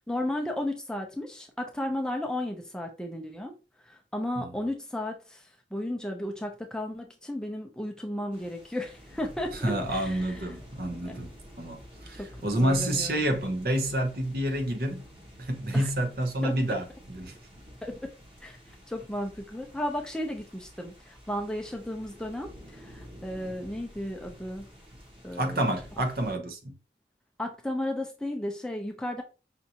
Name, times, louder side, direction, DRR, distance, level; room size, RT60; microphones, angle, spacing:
voice 1, 0.1-3.5 3.9-10.5 11.0-11.3 12.2-13.1 15.7-15.9 16.4-16.5 17.8-18.0 18.4-18.6 18.9-24.7 25.2-26.0 27.4-29.2, left 1 dB, 5° left, 0.5 m, -34 dB
sound 1, 8.3-26.4, equal, 30° right, 1.2 m, -49 dB
voice 2, 9.5-11.3 11.6-15.1 15.4-17.4 25.3-26.8, right 1 dB, 55° right, 0.8 m, -29 dB
5.4 x 2.5 x 2.8 m
head